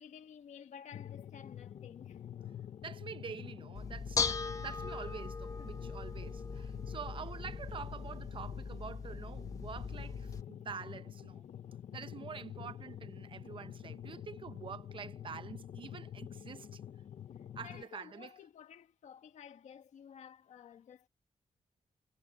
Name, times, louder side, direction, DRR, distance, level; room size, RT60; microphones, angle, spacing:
voice 1, 0.0-2.5 5.6-5.8 7.1-7.3 17.4-21.1, left 8 dB, 85° left, 1.6 m, -53 dB
sound 1, 0.9-17.8, left 10 dB, 65° left, 0.8 m, -47 dB
voice 2, 2.8-11.4 11.9-16.8 17.6-18.3, right 6 dB, 45° right, 0.8 m, -47 dB
Bell / Dishes pots and pans, 3.7-10.4, left 5 dB, 30° left, 1.3 m, -39 dB
wide cardioid pair, 155°, 12 cm